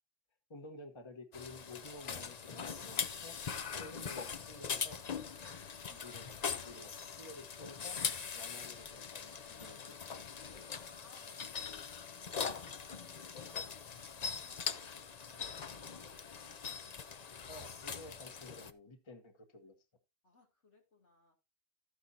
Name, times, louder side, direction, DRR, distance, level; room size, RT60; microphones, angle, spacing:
voice 1, 0.5-3.4 3.8-5.0 5.9-8.0 8.3-10.0 17.5-19.8, left 2 dB, 25° left, 1.2 m, -52 dB
sound 1, 1.3-18.7, left 6 dB, 40° left, 0.7 m, -42 dB
voice 2, 10.9-11.9 12.4-16.6 20.2-21.4, left 3 dB, 85° left, 3.3 m, -66 dB
12.5 x 9.6 x 2.8 m
omnidirectional pair, 1.2 m